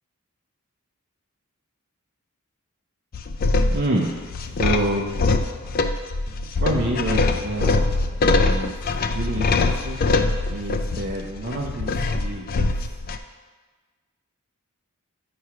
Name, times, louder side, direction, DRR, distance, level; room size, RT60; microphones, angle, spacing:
sound 1, 3.1-13.2, left 3 dB, 40° left, 0.3 m, -23 dB
voice 1, 3.7-4.1 4.4-5.1 6.6-7.8 8.3-8.8 9.1-10.0 10.5-12.9, right 1 dB, 45° right, -3 dB, 0.6 m, -27 dB
8.3 x 3.2 x 5.7 m, 1.4 s
head